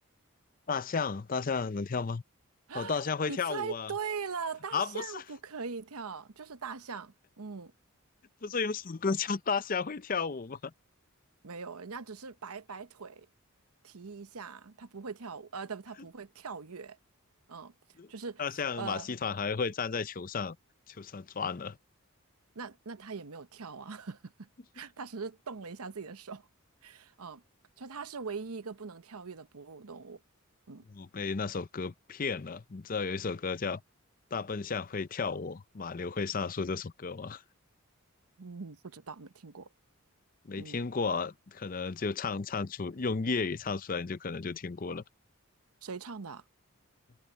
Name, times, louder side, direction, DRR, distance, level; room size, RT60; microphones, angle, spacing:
voice 1, 0.7-2.2 2.7-3.9 4.7-5.2 8.4-10.7 18.0-18.1 18.4-20.6 20.9-21.8 30.9-33.8 34.3-37.4 40.4-45.0, left 5 dB, 40° left, 0.5 m, -33 dB
voice 2, 2.7-7.7 11.4-13.3 13.8-17.0 17.5-17.7 18.1-18.4 18.8-19.1 22.5-24.5 24.7-26.5 26.8-27.4 27.8-30.2 30.7-30.9 38.4-39.7 40.5-40.8 45.8-46.4, right 5 dB, 85° right, 0.9 m, -41 dB
head